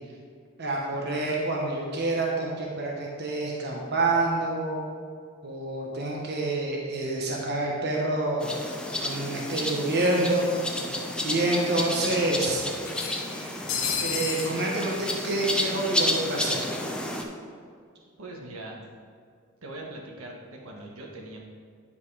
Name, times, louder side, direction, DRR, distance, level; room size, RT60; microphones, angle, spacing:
voice 1, 0.6-4.8 5.4-8.5 9.0-10.5 11.2-12.6 14.0-16.7, right 2 dB, 50° right, -2 dB, 1.1 m, -27 dB
sound 1, 8.4-17.2, left 1 dB, 5° left, 0.6 m, -31 dB
sound 2, 12.9-14.5, left 6 dB, 65° left, 1.2 m, -31 dB
voice 2, 18.2-18.8 19.6-21.4, right 2 dB, 80° right, -1 dB, 1.4 m, -41 dB
9.8 x 5.3 x 4.8 m, 2.1 s
head